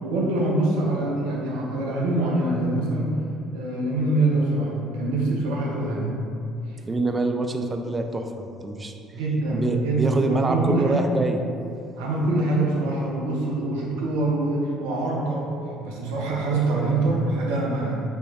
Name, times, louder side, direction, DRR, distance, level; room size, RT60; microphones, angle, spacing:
voice 1, 0.0-3.2 3.5-6.2 6.7-6.8 9.1-11.1 12.0-18.0, right 2 dB, 75° right, -3 dB, 0.8 m, -24 dB
voice 2, 6.9-8.9 9.5-11.4, right 2 dB, 25° right, 5 dB, 0.4 m, -25 dB
5.4 x 3.0 x 2.8 m, 2.6 s
hypercardioid pair, 55°, 0 cm